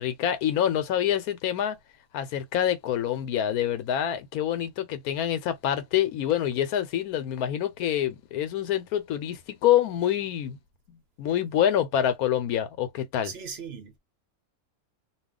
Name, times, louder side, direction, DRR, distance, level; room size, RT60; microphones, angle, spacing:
voice 1, 0.0-1.8 2.1-10.6 10.9-13.3, left 10 dB, 85° left, 1.1 m, -26 dB
voice 2, 13.2-14.0, right 6 dB, 55° right, 0.9 m, -38 dB
2.4 x 2.4 x 3.6 m
omnidirectional pair, 1.5 m